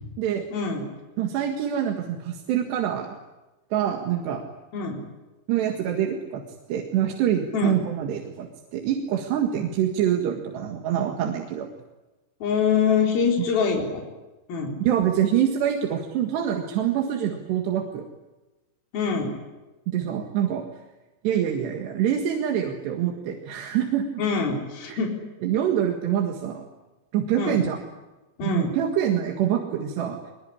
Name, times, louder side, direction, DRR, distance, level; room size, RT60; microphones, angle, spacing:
voice 1, 0.5-0.8 4.7-5.0 7.5-7.8 12.4-14.0 14.5-14.8 18.9-19.3 24.2-25.1 27.4-27.6 28.4-28.7, left 5 dB, 55° left, 0 dB, 5.8 m, -24 dB
voice 2, 1.2-3.2 3.7-4.4 5.5-6.4 6.7-11.7 14.9-18.0 19.9-20.6 21.2-24.1 24.9-25.0 25.4-26.6 27.1-27.8 28.4-30.2, right 9 dB, 70° right, 3 dB, 3.8 m, -25 dB
24.0 x 22.5 x 10.0 m, 1.1 s
omnidirectional pair, 5.2 m